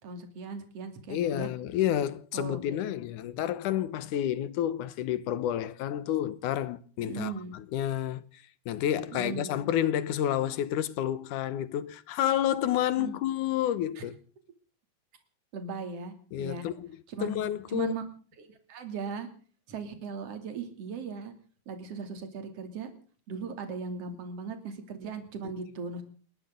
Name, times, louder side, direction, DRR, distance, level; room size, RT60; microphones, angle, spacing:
voice 1, 0.0-1.5 2.3-3.0 7.0-7.6 8.9-9.5 13.0-13.2 14.0-14.1 15.5-16.7 17.1-17.4 17.7-18.0 18.4-19.3 19.7-21.3 21.7-22.9 23.3-26.0, right 5 dB, 50° right, 3.6 m, -38 dB
voice 2, 1.1-8.3 8.7-14.1 16.3-16.9 17.2-17.9, left 11 dB, 75° left, 2.4 m, -30 dB
29.5 x 12.0 x 3.8 m
omnidirectional pair, 3.7 m